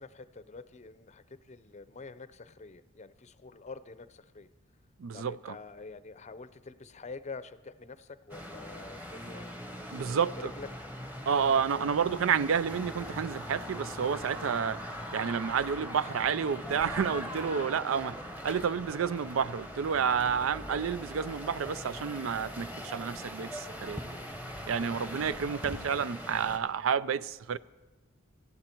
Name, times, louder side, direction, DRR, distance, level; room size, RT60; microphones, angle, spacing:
voice 1, 0.0-4.5 5.1-9.6 10.0-10.7 11.4-11.8 24.8-25.1, left 4 dB, 35° left, 0.6 m, -46 dB
voice 2, 5.0-5.6 9.9-10.5 11.3-14.8 15.1-24.0 24.7-27.6, right 7 dB, 80° right, 0.4 m, -30 dB
sound 1, 8.3-26.6, equal, 10° right, 1.2 m, -41 dB
18.5 x 14.0 x 4.5 m
head